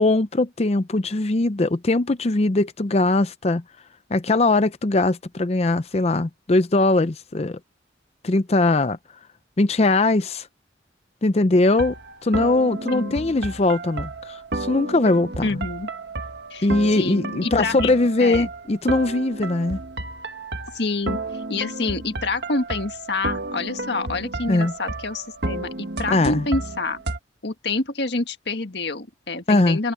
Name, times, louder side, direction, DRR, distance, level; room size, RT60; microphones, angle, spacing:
voice 1, 0.0-3.6 4.1-7.6 8.2-9.0 9.6-10.5 11.2-11.9 12.2-15.6 16.6-19.8 24.5-24.7 26.1-26.4 29.5-29.8, left 2 dB, 35° left, 0.6 m, -20 dB
sound 1, 11.7-27.2, right 2 dB, 65° right, 1.5 m, -32 dB
voice 2, 15.4-15.9 16.5-16.7 17.0-17.9 18.2-18.5 20.7-21.2 21.5-27.0 27.4-29.9, left 3 dB, 65° left, 1.7 m, -27 dB
head